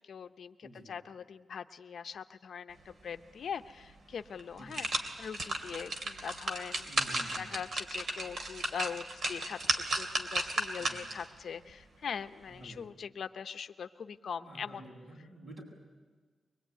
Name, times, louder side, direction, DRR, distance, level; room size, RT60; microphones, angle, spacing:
voice 1, 0.0-4.9 5.2-14.9, left 7 dB, 70° left, 9 dB, 0.8 m, -42 dB
sound 1, 3.8-3.9 4.4-11.3 11.7-11.8, right 2 dB, 60° right, 2.9 m, -34 dB
voice 2, 6.9-7.5 10.8-11.1 12.6-12.9 14.4-15.6, right 1 dB, 40° right, 0 dB, 7.5 m, -49 dB
23.5 x 22.0 x 9.3 m, 1.4 s
wide cardioid pair, 145°, 0 cm